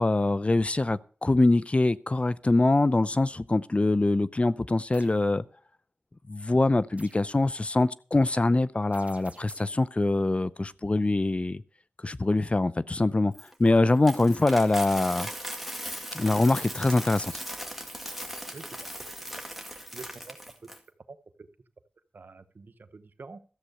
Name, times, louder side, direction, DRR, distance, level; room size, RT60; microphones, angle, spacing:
voice 1, 0.0-5.4 6.3-11.6 12.0-13.3 13.6-15.3 16.1-17.3, left 2 dB, 40° left, 0.6 m, -24 dB
sound 1, 4.9-5.2 7.0-7.3 8.9-9.9, right 2 dB, 45° right, 1.4 m, -52 dB
Coin (dropping), 13.3-20.8, equal, 5° right, 2.0 m, -38 dB
voice 2, 18.5-18.9 19.2-19.3 19.9-20.4 21.1-21.5 22.1-23.4, right 4 dB, 75° right, 0.9 m, -47 dB
13.0 x 7.5 x 6.8 m
cardioid pair, 45°, 3 cm